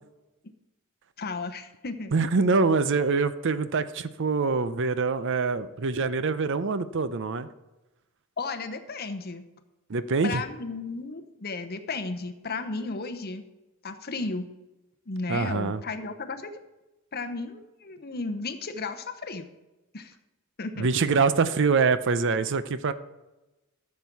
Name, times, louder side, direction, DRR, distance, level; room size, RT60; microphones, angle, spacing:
voice 1, 1.2-2.1 8.4-9.4 10.2-13.4 13.8-14.5 15.1-16.6 17.1-19.5 19.9-20.1 20.6-20.9, left 3 dB, 45° left, 7 dB, 0.9 m, -34 dB
voice 2, 2.1-7.5 9.9-10.4 15.3-15.8 20.8-22.9, right 4 dB, 60° right, 13 dB, 0.6 m, -24 dB
13.5 x 7.4 x 4.7 m, 1.0 s
head